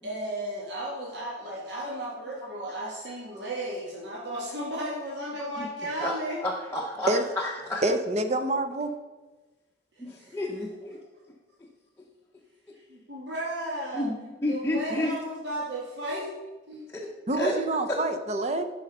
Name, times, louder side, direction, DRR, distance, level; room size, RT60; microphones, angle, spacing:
voice 1, 0.0-6.4 10.2-10.3 12.9-14.1 14.5-16.3 16.7-16.9, right 1 dB, 60° right, -4 dB, 1.7 m, -34 dB
voice 2, 5.4-5.7 6.0-7.8 10.0-11.0 12.7-12.8 13.9-14.2 14.4-15.1 16.9-17.5 17.9-18.0, left 1 dB, 10° left, -2 dB, 0.7 m, -31 dB
voice 3, 7.8-8.9 17.3-18.6, right 2 dB, 35° right, 7 dB, 0.7 m, -26 dB
11.0 x 5.0 x 5.3 m, 1.2 s
head